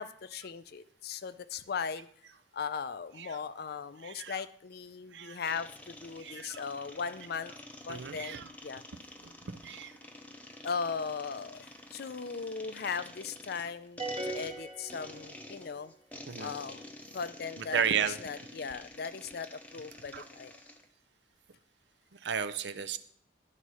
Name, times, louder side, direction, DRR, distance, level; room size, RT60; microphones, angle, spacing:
voice 1, 0.0-2.1 2.5-7.5 7.9-8.4 8.6-8.8 10.6-15.9 16.4-16.9 17.1-20.6, left 5 dB, 60° left, 14 dB, 0.4 m, -38 dB
voice 2, 4.0-4.3 5.1-5.4 6.2-6.6 7.9-8.4 9.2-9.9 16.3-16.5 17.6-18.2 20.1-20.2 22.1-23.0, right 7 dB, 70° right, 13 dB, 0.6 m, -34 dB
sound 1, 5.4-20.8, left 1 dB, 10° left, 0.7 m, -49 dB
sound 2, 14.0-15.7, right 2 dB, 30° right, 1.4 m, -39 dB
11.0 x 4.1 x 6.2 m, 0.64 s
head